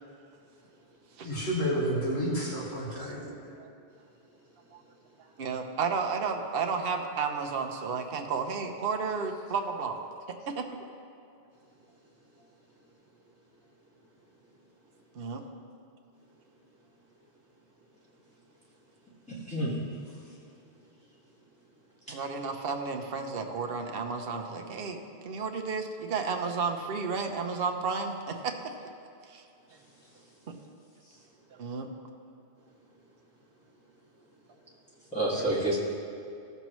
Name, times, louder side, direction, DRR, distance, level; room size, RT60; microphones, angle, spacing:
voice 1, 1.2-3.5 31.1-31.2 35.3-35.5, equal, 85° left, -5 dB, 1.9 m, -31 dB
voice 2, 5.4-10.0 10.6-10.7 15.1-15.4 22.1-28.1 28.4-28.5 29.3-29.4 31.6-31.9, right 5 dB, 65° right, 4 dB, 1.0 m, -32 dB
voice 3, 19.3-19.7 35.1-35.8, right 1 dB, 5° left, -9 dB, 1.9 m, -28 dB
15.5 x 6.8 x 3.1 m, 2.5 s
omnidirectional pair, 1.1 m